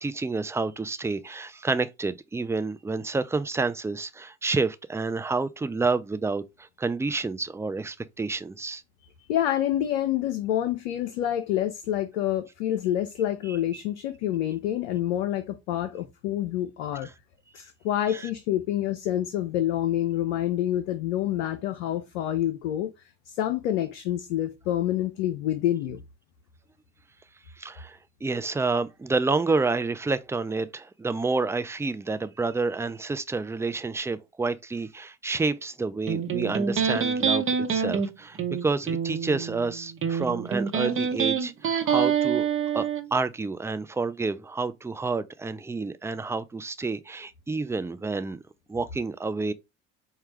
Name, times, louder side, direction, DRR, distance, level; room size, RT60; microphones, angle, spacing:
voice 1, 0.0-8.8 13.5-13.6 18.1-18.3 27.6-37.5 37.7-42.5 42.7-48.4 48.7-49.5, right 3 dB, 10° right, 0.4 m, -29 dB
voice 2, 9.2-17.1 17.5-22.9 23.3-26.0, left 12 dB, 85° left, 0.5 m, -27 dB
Electric guitar, 36.1-43.0, right 7 dB, 40° right, 1.0 m, -26 dB
4.6 x 2.3 x 3.0 m
hypercardioid pair, 65°, 34 cm